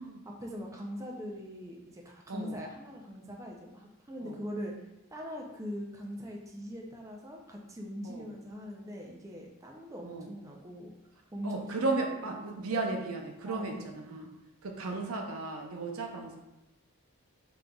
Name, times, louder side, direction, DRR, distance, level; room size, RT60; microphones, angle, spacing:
voice 1, 0.3-4.8 5.1-10.9 11.3-11.8 13.4-13.8 14.1-14.2, equal, 15° right, 0 dB, 0.4 m, -41 dB
voice 2, 2.3-2.6 4.2-4.4 8.0-8.3 10.0-10.3 11.4-14.3 14.6-16.4, right 3 dB, 80° right, 2 dB, 0.7 m, -35 dB
5.0 x 3.8 x 2.3 m, 0.97 s
head